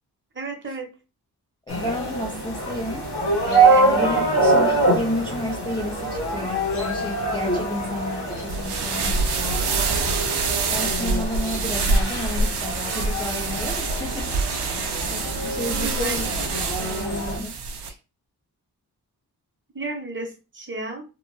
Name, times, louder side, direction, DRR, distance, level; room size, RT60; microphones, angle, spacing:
voice 1, 0.3-0.9 3.7-4.2 15.7-16.2 19.7-21.0, right 2 dB, 30° right, 0.7 m, -33 dB
sound 1, 1.7-17.4, right 2 dB, 85° left, 1.4 m, -25 dB
voice 2, 1.7-3.1 3.4-9.6 10.7-14.3 15.1-16.3 16.8-17.6 17.8-18.0, left 1 dB, 15° left, 0.3 m, -32 dB
sound 2, 8.4-17.9, right 4 dB, 90° right, 0.5 m, -26 dB
2.9 x 2.1 x 2.5 m
wide cardioid pair, 115°, 39 cm